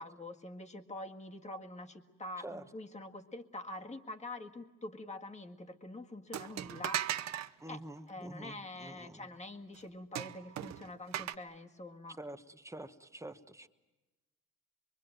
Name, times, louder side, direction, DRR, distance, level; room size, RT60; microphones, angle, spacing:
voice 1, 0.0-7.1 7.7-7.8 8.1-12.2, left 2 dB, 25° left, 4 dB, 1.8 m, -45 dB
sound 1, 6.3-7.5 10.2-11.4, right 11 dB, 65° right, 0.9 m, -37 dB
voice 2, 7.6-9.3 12.2-13.7, right 1 dB, 10° right, 9 dB, 1.2 m, -47 dB
24.0 x 24.0 x 9.2 m, 1.1 s
cardioid pair, 90°, 30 cm